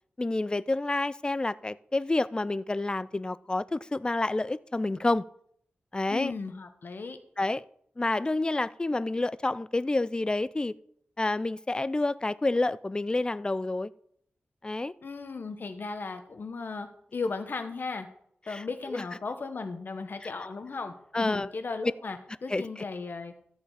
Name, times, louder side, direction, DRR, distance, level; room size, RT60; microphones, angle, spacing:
voice 1, 0.2-5.3 5.9-6.3 7.4-7.6 8.0-10.7 11.2-13.9 14.6-14.9 18.5-19.0 20.2-20.3 21.1-21.5 22.5-22.8, left 2 dB, 20° left, 0.4 m, -29 dB
voice 2, 6.1-7.2 15.0-18.1 18.5-23.3, left 4 dB, 60° left, 1.4 m, -36 dB
13.5 x 7.1 x 4.9 m
wide cardioid pair, 75°, 4 cm